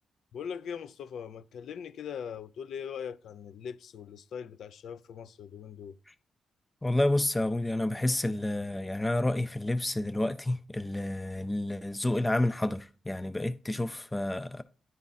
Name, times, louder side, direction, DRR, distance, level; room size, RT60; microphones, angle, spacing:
voice 1, 0.3-5.9, left 7 dB, 80° left, 0.4 m, -41 dB
voice 2, 6.8-14.6, left 1 dB, 10° left, 0.3 m, -29 dB
10.5 x 3.6 x 4.1 m
wide cardioid pair, 175°, 0 cm